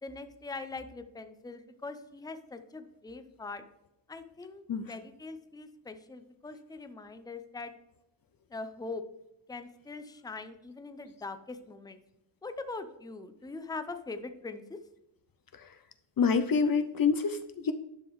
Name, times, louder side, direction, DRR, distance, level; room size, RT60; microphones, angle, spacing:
voice 1, 0.0-3.6 4.1-7.7 8.5-9.0 9.5-12.0 12.4-14.8, left 3 dB, 10° left, 9 dB, 0.6 m, -42 dB
voice 2, 16.2-17.7, left 5 dB, 50° left, 10 dB, 0.6 m, -26 dB
10.5 x 5.2 x 3.1 m, 0.85 s
cardioid pair, 80°, 46 cm